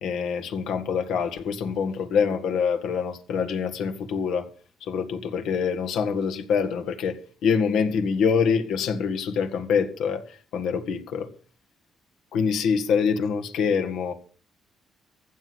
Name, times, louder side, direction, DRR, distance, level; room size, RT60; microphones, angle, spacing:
voice 1, 0.0-4.5 4.8-11.3 12.3-14.1, left 6 dB, 85° left, 8 dB, 1.8 m, -25 dB
15.0 x 6.3 x 9.7 m, 0.42 s
cardioid pair, 90°, 0 cm